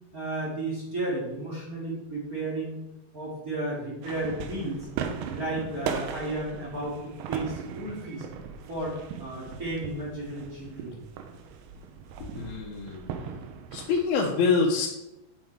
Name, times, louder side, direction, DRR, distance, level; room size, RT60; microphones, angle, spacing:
voice 1, 0.1-2.8 3.1-4.9 5.2-8.2 8.7-10.9, right 2 dB, 30° right, -6 dB, 1.7 m, -33 dB
sound 1, 4.0-14.1, right 7 dB, 75° right, 2.4 m, -38 dB
voice 2, 12.2-13.1 13.7-14.9, left 4 dB, 75° left, -3 dB, 2.5 m, -26 dB
7.3 x 7.2 x 4.6 m, 0.93 s
omnidirectional pair, 5.0 m